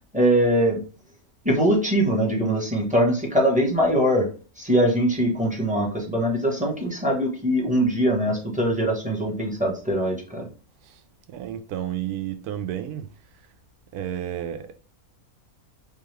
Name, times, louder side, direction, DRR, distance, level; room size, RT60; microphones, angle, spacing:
voice 1, 0.1-0.8 1.4-4.3 4.6-10.5, equal, 5° right, 0.8 m, -22 dB
voice 2, 11.3-13.1 13.9-14.8, right 11 dB, 90° right, 1.1 m, -31 dB
3.5 x 3.2 x 3.2 m
omnidirectional pair, 1.5 m